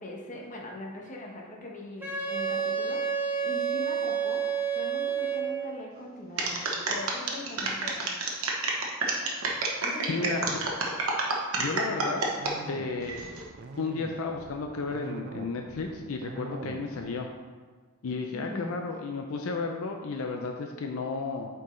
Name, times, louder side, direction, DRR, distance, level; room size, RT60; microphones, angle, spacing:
voice 1, 0.0-8.1 9.8-10.6 18.3-18.7, left 1 dB, 35° left, -1 dB, 1.1 m, -41 dB
Wind instrument woodwind instrument, 2.0-5.8, right 7 dB, 10° right, 0.8 m, -29 dB
sound 1, 6.4-12.5 13.0-13.4, right 3 dB, 70° right, 1.0 m, -29 dB
voice 2, 10.1-10.6 11.6-12.2 12.7-13.2 13.8-17.3 18.0-21.5, left 3 dB, 75° left, 3 dB, 0.5 m, -33 dB
sound 2, 12.4-17.3, right 2 dB, 45° right, 0.4 m, -43 dB
8.4 x 4.6 x 3.2 m, 1.5 s
head